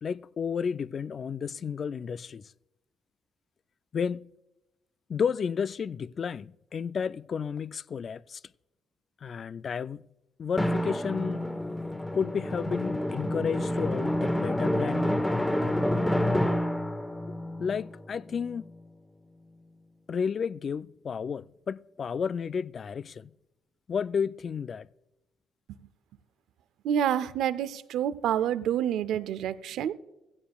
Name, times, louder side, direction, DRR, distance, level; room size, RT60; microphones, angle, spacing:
voice 1, 0.0-2.5 3.9-4.3 5.1-8.4 9.2-10.1 10.4-11.4 12.1-15.2 17.6-18.7 20.1-23.3 23.9-24.9, left 6 dB, 50° left, 0.3 m, -32 dB
Drum, 10.6-18.9, left 1 dB, 10° left, 1.0 m, -29 dB
voice 2, 26.8-29.9, right 9 dB, 85° right, 0.5 m, -28 dB
16.0 x 16.0 x 2.4 m
cardioid pair, 90°, 0 cm